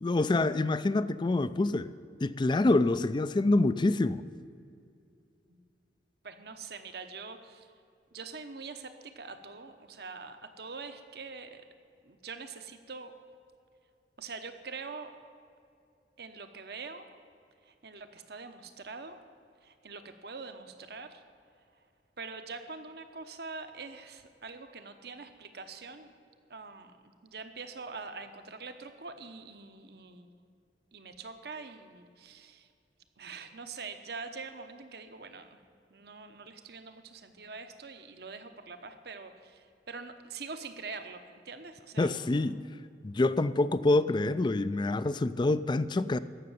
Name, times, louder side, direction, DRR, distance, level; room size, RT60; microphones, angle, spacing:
voice 1, 0.0-1.9 2.2-4.2 42.0-42.6 43.0-46.2, left 2 dB, 25° left, 15 dB, 0.4 m, -26 dB
voice 2, 6.2-7.7 8.1-11.7 12.0-13.1 14.2-15.1 16.2-17.1 17.6-19.2 19.6-21.2 22.2-26.1 26.5-30.3 30.9-32.7 33.2-35.6 35.9-42.5, right 4 dB, 65° right, 8 dB, 1.0 m, -44 dB
14.5 x 6.6 x 9.5 m, 2.5 s
head